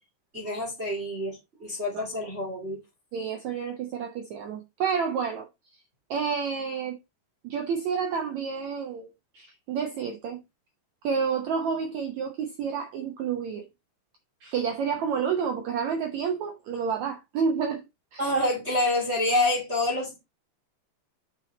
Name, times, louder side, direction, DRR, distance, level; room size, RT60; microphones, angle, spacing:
voice 1, 0.3-2.8 18.2-20.2, left 1 dB, 20° right, 2.4 m, -27 dB
voice 2, 3.1-5.5 6.1-7.0 7.4-10.4 11.0-13.6 14.4-17.9 18.1-18.3, right 6 dB, 65° right, 1.9 m, -29 dB
6.4 x 6.3 x 4.0 m
omnidirectional pair, 4.3 m